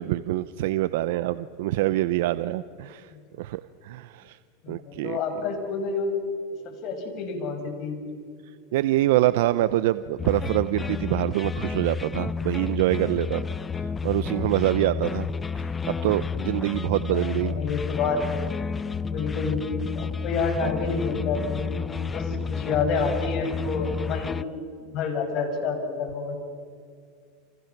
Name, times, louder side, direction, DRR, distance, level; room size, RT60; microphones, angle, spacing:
voice 1, 0.0-3.1 3.4-4.4 4.7-5.2 8.7-13.4 14.0-15.3 15.6-17.6 22.3-22.5, right 15 dB, 70° right, 14 dB, 0.7 m, -25 dB
voice 2, 4.6-6.2 6.8-7.9 17.1-18.5 19.1-21.7 22.1-26.4, left 4 dB, 50° left, 4 dB, 6.5 m, -29 dB
sound 1, 10.2-24.4, left 6 dB, 15° left, 0.6 m, -31 dB
29.0 x 28.5 x 6.1 m, 2.1 s
supercardioid pair, 125°, 0 cm